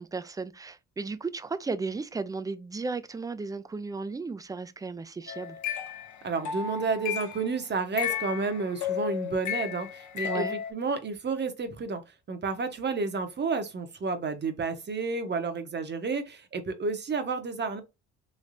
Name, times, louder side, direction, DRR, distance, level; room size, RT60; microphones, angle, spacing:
voice 1, 0.0-5.6 10.2-10.6, right 4 dB, 10° right, 0.3 m, -35 dB
sound 1, 5.3-7.5 8.0-10.7, left 9 dB, 70° left, 0.8 m, -34 dB
voice 2, 6.2-12.0 12.3-17.8, right 4 dB, 35° right, 0.8 m, -31 dB
3.2 x 3.1 x 2.5 m
cardioid pair, 90°, 30 cm